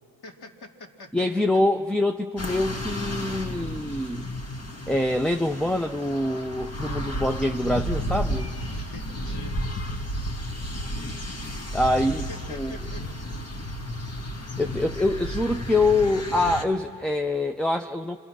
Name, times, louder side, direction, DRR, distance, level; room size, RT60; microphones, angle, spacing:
voice 1, 0.2-1.2 8.6-9.6 12.1-13.0, left 2 dB, 55° left, 1 dB, 3.3 m, -44 dB
voice 2, 1.1-4.2 4.9-8.5 11.7-12.8 14.6-18.2, left 2 dB, ahead, 7 dB, 0.6 m, -25 dB
sound 1, 2.4-16.6, equal, 35° left, 1.8 m, -32 dB
29.0 x 26.5 x 6.1 m, 2.5 s
supercardioid pair, 70°, 45 cm